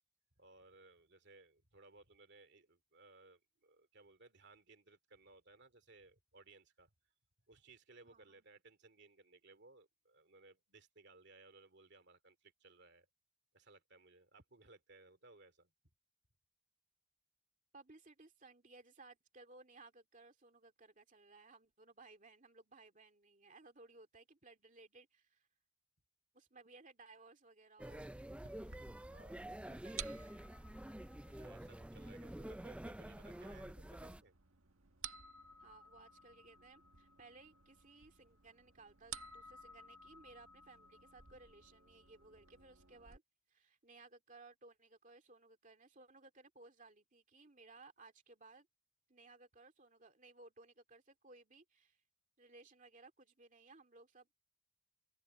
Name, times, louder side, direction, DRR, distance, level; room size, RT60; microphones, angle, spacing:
voice 1, 0.4-6.9 7.5-13.1 13.5-15.7 29.3-29.4 31.3-34.3, right 3 dB, 50° right, 2.5 m, -62 dB
voice 2, 8.0-8.4 17.7-25.5 26.3-28.1 29.1-30.2 33.3-33.7 35.6-43.2 43.5-48.7 49.1-52.0 52.4-54.4, right 3 dB, 35° right, 2.5 m, -61 dB
sound 1, 27.8-34.2, right 1 dB, 5° right, 0.3 m, -48 dB
sound 2, 28.4-43.2, right 7 dB, 70° right, 1.7 m, -55 dB
open air
head